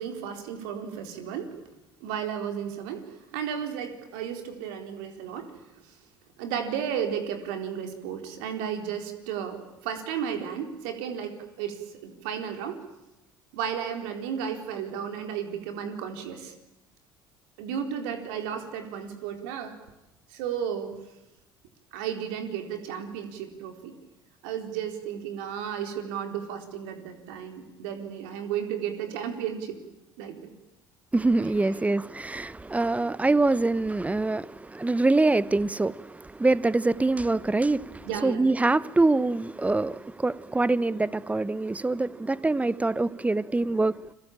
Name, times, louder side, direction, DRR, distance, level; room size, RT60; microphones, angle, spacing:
voice 1, 0.0-1.5 2.0-3.0 3.3-5.5 5.8-6.0 6.4-12.8 13.5-16.5 17.6-19.8 20.3-20.9 21.9-24.0 24.4-29.8 30.2-30.5 31.4-31.8 38.0-38.5, right 8 dB, 70° right, 4.1 m, -33 dB
voice 2, 31.1-44.0, right 2 dB, 10° right, 0.9 m, -25 dB
30.0 x 22.0 x 8.8 m
hypercardioid pair, 60°, 11 cm